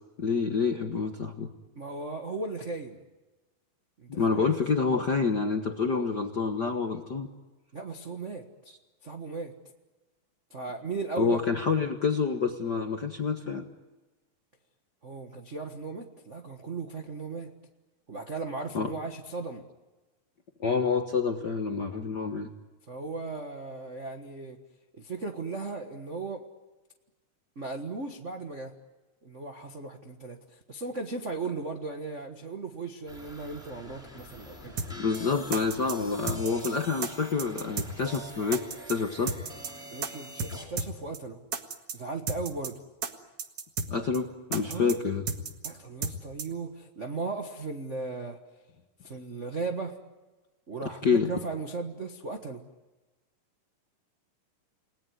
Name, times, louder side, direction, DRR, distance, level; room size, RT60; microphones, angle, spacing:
voice 1, 0.2-1.5 4.1-7.3 11.1-13.6 18.7-18.9 20.6-22.5 35.0-39.4 43.9-45.2 51.0-51.3, left 5 dB, 65° left, 5 dB, 1.0 m, -28 dB
voice 2, 1.7-3.0 4.0-4.6 7.7-8.4 9.0-9.5 10.5-11.4 15.0-17.5 18.1-19.6 22.9-24.6 24.9-26.4 27.5-28.7 29.2-34.8 39.9-41.4 41.9-42.8 44.6-44.9 45.6-48.4 49.0-50.0 50.7-52.6, right 3 dB, 75° right, 5 dB, 0.6 m, -36 dB
sound 1, 33.1-40.6, equal, ahead, 6.2 m, -45 dB
sound 2, 34.8-34.9 35.1-35.2 35.5-36.0 36.3-36.7 37.0-37.1 37.4-37.9 38.1-38.2 38.5-39.0 39.3-39.7 40.0-40.1 40.4-40.5 40.8-40.9 41.1-41.2 41.5-42.0 42.3-42.7 43.0-43.1 43.4-43.9 44.1-44.2 44.5-45.0 45.3-45.7 46.0-46.1 46.4-46.5, right 5 dB, 50° right, 2.3 m, -32 dB
29.5 x 19.5 x 9.5 m, 1.2 s
omnidirectional pair, 3.9 m